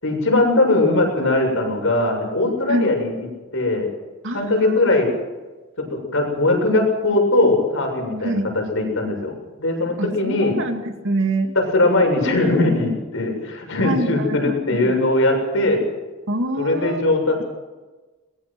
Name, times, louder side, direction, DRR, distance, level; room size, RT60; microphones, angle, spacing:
voice 1, 0.0-3.3 3.5-3.9 4.3-5.1 5.8-9.3 9.6-10.6 11.6-15.8 16.6-17.4, left 2 dB, 65° left, 2 dB, 7.2 m, -20 dB
voice 2, 4.2-4.8 8.2-8.5 10.0-11.5 13.8-14.9 16.3-17.0, right 1 dB, 65° right, 5 dB, 2.4 m, -25 dB
22.5 x 20.5 x 6.2 m, 1.2 s
head